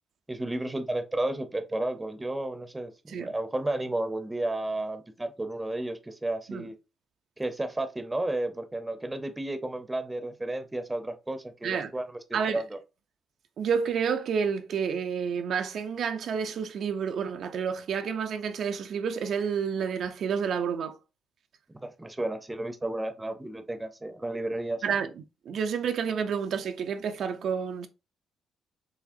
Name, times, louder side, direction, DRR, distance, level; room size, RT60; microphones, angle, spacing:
voice 1, 0.3-6.7 7.4-12.0 12.3-12.8 21.8-24.8, right 1 dB, 15° right, 0.7 m, -32 dB
voice 2, 13.6-21.0 24.8-27.9, right 6 dB, 65° right, 0.4 m, -29 dB
4.8 x 3.1 x 2.6 m
cardioid pair, 90°, 0 cm